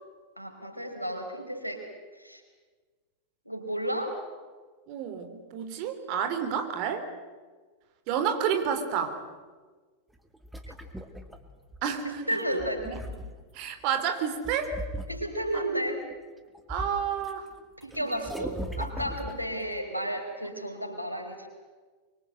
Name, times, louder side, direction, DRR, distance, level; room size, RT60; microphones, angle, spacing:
voice 1, 0.4-1.9 2.1-2.4 3.4-4.2 10.7-10.8 12.0-13.2 15.1-16.0 17.8-21.5, equal, 90° left, 3 dB, 4.6 m, -33 dB
voice 2, 4.9-7.0 8.1-9.2 11.8-12.0 13.5-14.8 16.7-17.5 18.0-18.5, right 8 dB, 45° right, 7 dB, 3.6 m, -30 dB
sound 1, 10.2-12.0 12.5-13.6 14.4-15.6 16.1-17.3 17.6-19.7, right 1 dB, 5° right, 2.2 m, -39 dB
24.5 x 23.5 x 8.0 m, 1.4 s
figure-of-eight pair, 90°, 0 cm